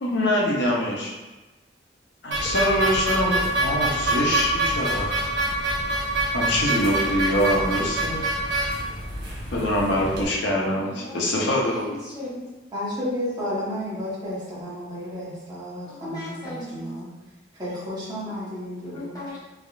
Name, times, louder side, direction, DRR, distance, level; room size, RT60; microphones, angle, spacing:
voice 1, 0.0-1.1 2.2-5.3 6.3-8.2 9.5-11.9, left 1 dB, 70° left, -2 dB, 0.6 m, -24 dB
sound 1, 2.3-10.2, right 1 dB, 65° right, 0.8 m, -26 dB
voice 2, 10.8-12.5 15.9-16.9 18.8-19.4, left 1 dB, 20° left, -8 dB, 0.8 m, -37 dB
voice 3, 12.7-17.1 17.5-19.2, left 1 dB, 25° right, -9 dB, 1.0 m, -32 dB
3.4 x 2.3 x 2.3 m, 1.1 s
head